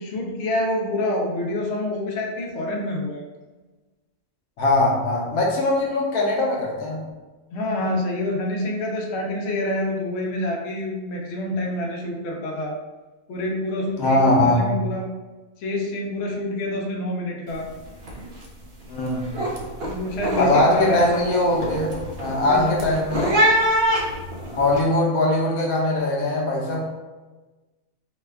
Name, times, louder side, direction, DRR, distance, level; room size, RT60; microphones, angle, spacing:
voice 1, 0.0-3.2 7.5-12.7 13.3-15.1 15.6-17.6 19.9-21.0 22.5-22.9, left 1 dB, 60° left, -1 dB, 0.8 m, -27 dB
voice 2, 4.6-7.1 14.0-14.7 18.9-19.4 20.4-23.3 24.6-26.9, left 1 dB, 85° left, -2 dB, 1.2 m, -21 dB
sound 1, 17.5-17.7 18.0-18.5 18.8-24.8, equal, 55° right, 0.7 m, -25 dB
3.2 x 2.2 x 3.4 m, 1.2 s
omnidirectional pair, 1.4 m